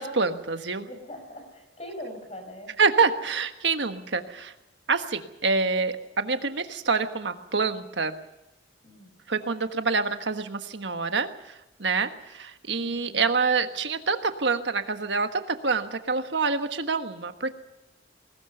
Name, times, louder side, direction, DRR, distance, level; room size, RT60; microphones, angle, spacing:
voice 1, 0.0-0.9 2.8-4.5 4.9-8.2 9.3-17.6, right 4 dB, 75° right, 8 dB, 1.4 m, -26 dB
voice 2, 0.9-2.7 8.8-9.2 12.8-13.3, left 1 dB, 35° left, 5 dB, 5.3 m, -42 dB
20.5 x 19.0 x 6.8 m, 0.96 s
head